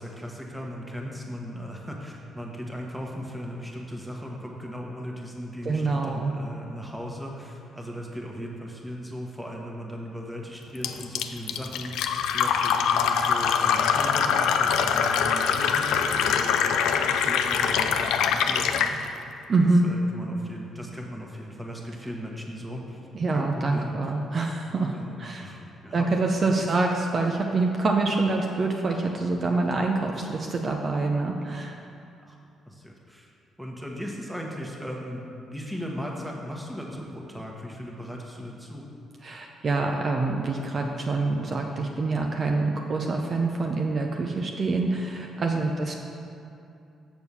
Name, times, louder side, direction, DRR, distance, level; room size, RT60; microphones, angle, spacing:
voice 1, 0.0-19.0 19.8-23.0 23.3-23.9 24.9-26.7 32.2-32.4 32.7-33.3 33.6-38.9, equal, 5° right, -1 dB, 1.2 m, -37 dB
voice 2, 5.6-6.3 19.5-19.9 23.1-25.5 25.9-31.7 39.2-45.9, right 3 dB, 45° right, 1 dB, 0.6 m, -26 dB
Fill (with liquid), 10.8-18.9, left 7 dB, 85° left, 0.4 m, -23 dB
7.0 x 4.5 x 6.8 m, 2.7 s
cardioid pair, 90°, 0 cm